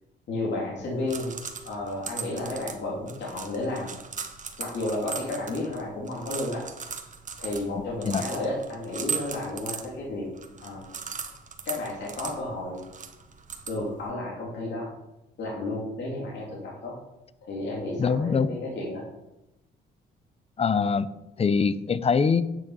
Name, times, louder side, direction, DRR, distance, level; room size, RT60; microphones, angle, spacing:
voice 1, 0.3-1.3 1.6-3.9 4.6-6.7 7.4-10.3 10.6-10.9 11.7-12.8 13.7-14.9 15.4-16.9 17.4-19.0, left 2 dB, 65° left, -4 dB, 2.7 m, -32 dB
sound 1, 0.8-14.1, right 6 dB, 40° right, 1.2 m, -39 dB
voice 2, 18.0-18.5 20.6-21.1 21.4-22.4, left 5 dB, 30° left, 15 dB, 0.6 m, -23 dB
9.3 x 6.0 x 5.5 m, 0.94 s
cardioid pair, 90°, 20 cm